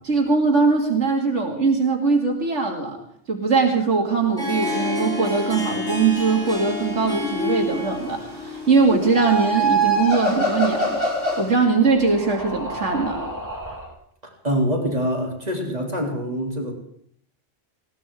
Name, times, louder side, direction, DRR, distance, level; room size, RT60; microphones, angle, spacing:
voice 1, 0.0-3.0 3.3-11.1 11.4-13.2, right 4 dB, 80° right, 1 dB, 2.6 m, -21 dB
Harp, 4.1-11.8, left 2 dB, 5° left, 3.8 m, -32 dB
sound 1, 6.9-7.9 8.9-11.5, right 2 dB, 85° left, 3.6 m, -23 dB
sound 2, 7.2-13.9, right 1 dB, 15° right, 2.9 m, -38 dB
voice 2, 14.2-16.7, equal, 35° right, 0 dB, 3.1 m, -25 dB
20.0 x 17.5 x 3.7 m, 0.64 s
omnidirectional pair, 1.2 m